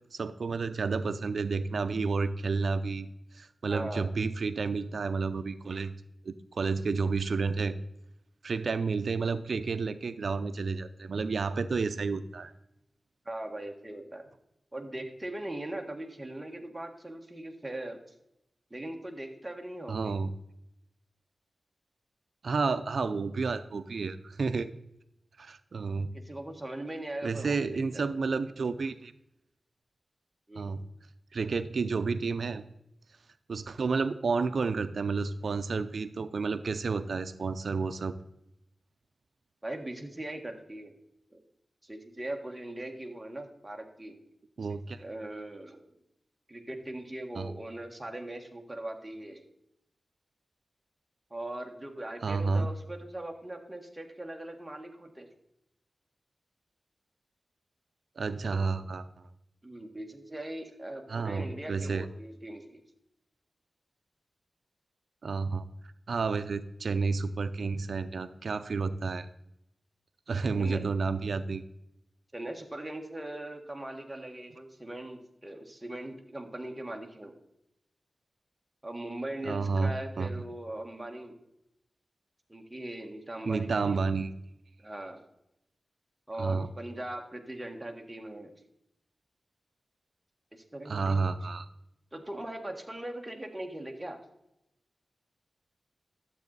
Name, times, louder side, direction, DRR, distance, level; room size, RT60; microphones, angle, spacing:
voice 1, 0.1-3.1 3.3-5.9 6.2-7.7 8.4-12.5 19.9-20.3 22.4-24.7 25.4-26.1 27.2-29.1 30.5-30.8 31.3-32.6 33.5-38.1 44.6-45.0 47.4-47.5 52.2-52.7 58.2-59.1 61.1-62.1 65.2-65.6 66.1-69.3 70.3-71.6 79.4-80.3 83.4-84.3 86.4-86.7 90.9-91.7, right 4 dB, 75° right, 12 dB, 0.5 m, -30 dB
voice 2, 3.7-4.1 13.2-14.2 14.7-18.0 18.7-20.1 26.1-28.0 30.5-30.7 39.6-40.9 41.3-41.4 41.8-44.1 45.0-45.8 46.5-49.4 51.3-55.3 58.4-58.7 59.6-62.8 70.6-70.8 72.3-77.3 78.8-81.4 82.5-84.1 84.8-85.2 86.3-88.5 90.5-91.3 92.1-94.2, right 1 dB, 10° right, 2 dB, 1.6 m, -40 dB
12.0 x 7.7 x 4.0 m, 0.83 s
wide cardioid pair, 90°, 0 cm